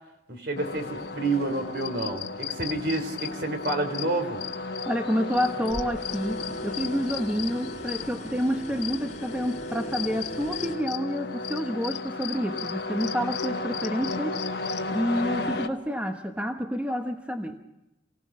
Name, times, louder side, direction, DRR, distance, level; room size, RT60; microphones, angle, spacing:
voice 1, 0.3-4.4, right 2 dB, 65° right, 6 dB, 3.5 m, -29 dB
sound 1, 0.6-15.7, left 4 dB, 65° left, 1.2 m, -34 dB
sound 2, 0.7-2.0 2.4-4.0 4.4-4.5 5.2-10.8, equal, 40° left, 4.2 m, -42 dB
voice 2, 4.9-14.4 14.9-17.6, equal, 5° right, 5 dB, 1.1 m, -29 dB
28.0 x 17.5 x 6.2 m, 0.91 s
head